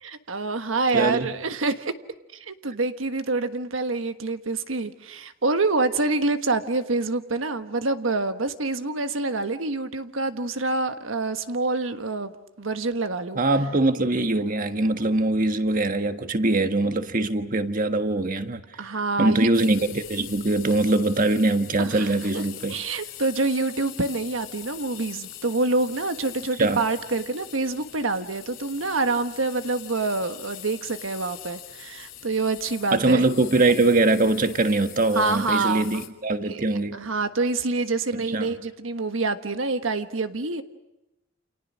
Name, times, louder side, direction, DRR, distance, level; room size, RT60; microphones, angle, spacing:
voice 1, 0.0-1.9 2.4-12.3 12.6-13.4 18.8-19.5 21.8-22.1 22.3-33.2 35.1-36.0 36.4-36.6 36.9-40.6, right 3 dB, 85° right, 1.4 m, -26 dB
voice 2, 0.9-1.3 13.3-18.9 19.2-22.8 26.6-26.8 32.9-37.0 38.3-38.5, right 2 dB, 45° right, 1.5 m, -22 dB
sound 1, 19.5-36.1, left 12 dB, 75° left, 2.7 m, -43 dB
29.5 x 28.0 x 6.3 m
head